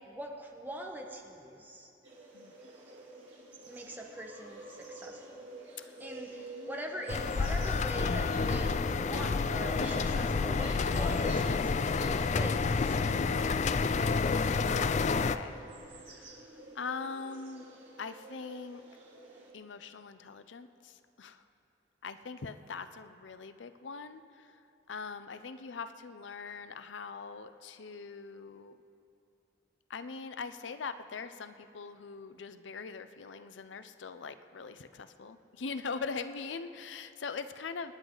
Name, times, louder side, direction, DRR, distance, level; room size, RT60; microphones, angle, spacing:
voice 1, 0.0-1.9 3.7-5.5 6.0-13.8, equal, 10° right, 1 dB, 1.2 m, -43 dB
sound 1, 2.0-19.5, right 2 dB, 85° right, 2.9 m, -48 dB
voice 2, 6.4-6.8 12.3-15.6 16.1-16.4 16.7-17.6 18.0-18.8 19.5-21.4 22.0-24.6 24.9-28.7 29.9-37.9, left 5 dB, 85° left, 11 dB, 0.6 m, -42 dB
sound 2, 7.1-15.4, left 4 dB, 40° left, 0.4 m, -29 dB
26.5 x 10.0 x 3.9 m, 2.6 s
head